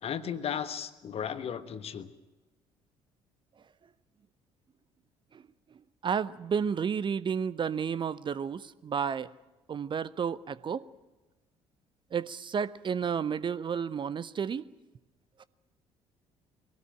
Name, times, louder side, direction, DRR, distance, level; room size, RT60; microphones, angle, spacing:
voice 1, 0.0-2.1, left 8 dB, 45° left, 12 dB, 1.4 m, -35 dB
voice 2, 6.0-9.3 9.7-10.8 12.1-14.6, right 7 dB, 35° right, 17 dB, 0.7 m, -31 dB
23.0 x 18.0 x 9.0 m, 1.1 s
figure-of-eight pair, 50°, 14 cm